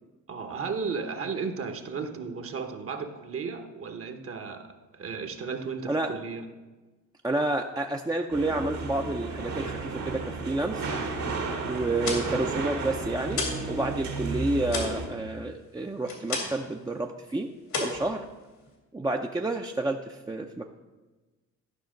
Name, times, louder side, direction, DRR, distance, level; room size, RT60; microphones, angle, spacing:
voice 1, 0.3-6.5, right 5 dB, 50° right, 7 dB, 1.1 m, -34 dB
voice 2, 7.2-10.9 11.6-17.5 17.8-18.2 18.9-20.7, right 2 dB, 15° right, 2 dB, 0.5 m, -30 dB
sound 1, 8.3-15.1, right 3 dB, 65° right, 1.8 m, -33 dB
sound 2, 11.8-13.7 14.0-16.7 17.0-17.3 17.7-18.8, left 4 dB, 90° left, 2.5 m, -33 dB
12.0 x 5.7 x 5.1 m, 1.2 s
cardioid pair, 90°, 30 cm